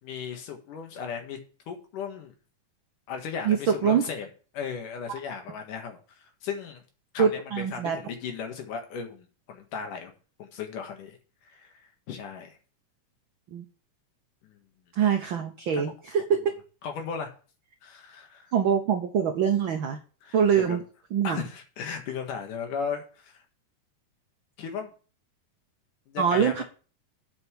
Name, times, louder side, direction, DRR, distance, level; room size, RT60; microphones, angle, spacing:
voice 1, 0.0-1.4 1.7-2.3 3.1-4.3 4.5-6.8 7.1-10.1 10.4-11.7 12.1-12.6 14.4-14.6 15.7-15.8 16.8-17.3 17.8-18.5 20.2-20.8 21.2-23.4 24.6-24.9 26.1-26.6, left 6 dB, 90° left, 4 dB, 3.2 m, -36 dB
voice 2, 3.4-4.1 7.2-8.0 13.5-13.6 15.0-16.5 18.5-20.0 20.3-20.8 21.1-21.4 26.2-26.6, right 7 dB, 80° right, 5 dB, 1.1 m, -24 dB
8.0 x 5.5 x 6.9 m, 0.37 s
omnidirectional pair, 3.6 m